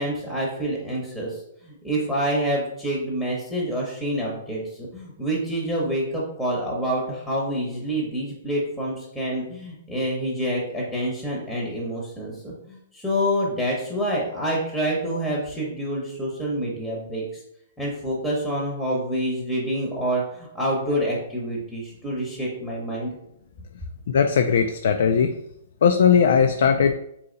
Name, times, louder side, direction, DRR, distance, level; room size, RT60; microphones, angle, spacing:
voice 1, 0.0-17.4 17.8-23.2, equal, ahead, -3 dB, 0.8 m, -27 dB
voice 2, 24.1-25.3 25.8-26.9, left 7 dB, 70° left, 7 dB, 0.3 m, -18 dB
4.2 x 2.8 x 3.8 m, 0.79 s
hypercardioid pair, 160°, 0 cm